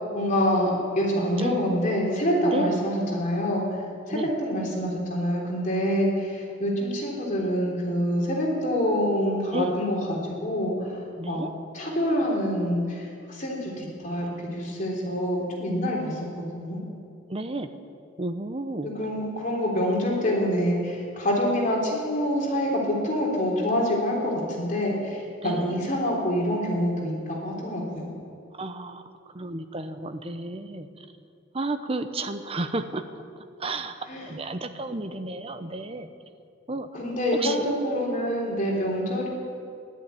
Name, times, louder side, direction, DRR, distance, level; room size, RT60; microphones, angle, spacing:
voice 1, 0.1-3.6 4.1-10.7 11.3-11.4 11.7-16.8 18.8-28.1 34.1-34.3 36.9-39.3, equal, 40° left, -3 dB, 3.4 m, -26 dB
voice 2, 11.2-11.5 17.3-17.7 18.2-18.9 25.4-25.8 28.6-29.0 29.3-30.9 31.5-33.0 33.6-36.1 36.7-36.9 37.4-37.6, right 2 dB, 30° right, 9 dB, 0.8 m, -32 dB
13.0 x 11.5 x 9.2 m, 2.3 s
head